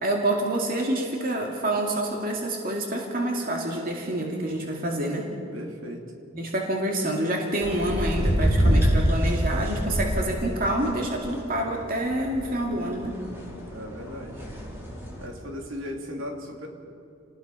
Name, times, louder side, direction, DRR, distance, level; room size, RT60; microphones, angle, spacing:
voice 1, 0.0-5.3 6.3-13.1, right 1 dB, 40° right, 0 dB, 2.4 m, -27 dB
voice 2, 5.5-6.0 13.7-14.4 15.2-16.7, equal, 70° right, 2 dB, 3.0 m, -37 dB
sound 1, 7.6-15.2, equal, 10° right, 4.4 m, -27 dB
29.5 x 19.5 x 5.7 m, 2.7 s
head